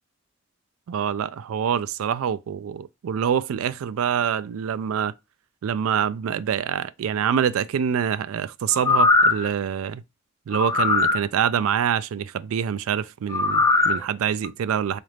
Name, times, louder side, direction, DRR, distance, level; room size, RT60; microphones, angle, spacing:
voice 1, 0.9-5.1 5.6-10.0 10.5-15.0, right 8 dB, 90° right, 0.3 m, -25 dB
sound 1, 8.7-9.5 10.5-11.2 13.3-14.0 14.4-14.5, left 3 dB, 15° left, 0.4 m, -20 dB
4.1 x 2.5 x 3.2 m
head